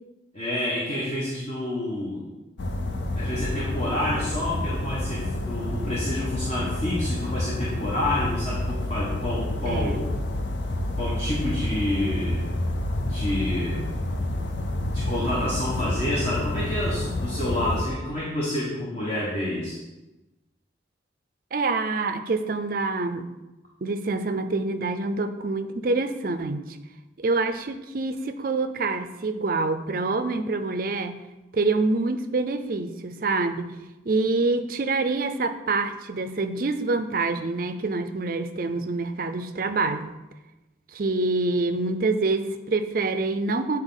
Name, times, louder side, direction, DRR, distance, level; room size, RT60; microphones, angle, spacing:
voice 1, 0.3-2.3 3.1-10.0 11.0-12.5 13.0-13.8 14.8-19.8, left 1 dB, 35° left, -6 dB, 1.2 m, -28 dB
sound 1, 2.6-17.8, left 1 dB, 75° left, 0.6 m, -29 dB
voice 2, 9.7-10.0 14.8-14.9 21.5-23.3 23.8-26.8 27.2-31.2 31.5-33.7 34.1-40.1 40.9-43.8, right 3 dB, 50° right, 9 dB, 0.4 m, -26 dB
8.0 x 4.4 x 3.9 m, 1.0 s
head